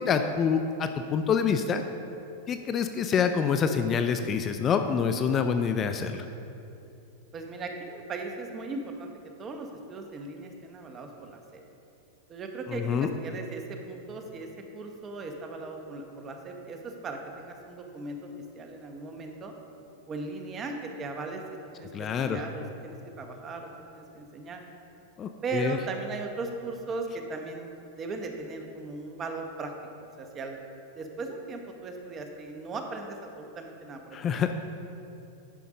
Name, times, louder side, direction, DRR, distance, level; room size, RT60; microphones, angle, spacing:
voice 1, 0.0-1.8 2.5-6.2 12.7-13.1 21.9-22.4 25.2-25.8 34.1-34.5, left 6 dB, 30° left, 7 dB, 0.4 m, -26 dB
voice 2, 7.3-9.1 9.4-11.6 12.3-18.3 18.5-19.5 20.1-21.4 21.7-24.6 25.4-29.7 30.2-30.6 30.9-34.4, right 3 dB, 30° right, 4 dB, 1.1 m, -38 dB
10.0 x 5.3 x 5.1 m, 2.8 s
hypercardioid pair, 115°, 0 cm